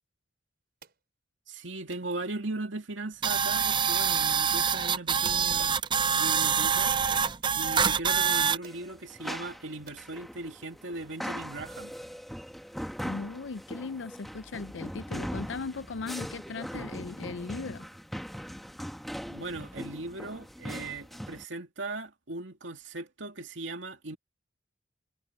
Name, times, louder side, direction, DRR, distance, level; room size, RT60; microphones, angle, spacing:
sound 1, 0.8-1.0 1.9-2.1 3.2-3.5 4.3-4.5 5.1-5.2 5.6-5.8 6.9-7.0 7.4-7.7 8.3-8.4 8.6-8.8 9.4-9.5 9.9-10.1, right 4 dB, 55° right, 5.3 m, -52 dB
voice 1, 1.5-5.8 6.2-6.9 7.6-11.9 19.3-24.2, right 2 dB, 90° right, 2.5 m, -38 dB
sound 2, 3.2-8.6, right 7 dB, 25° right, 0.5 m, -25 dB
sound 3, 8.6-21.4, equal, ahead, 1.2 m, -40 dB
voice 2, 13.0-17.9, left 4 dB, 75° left, 0.5 m, -38 dB
head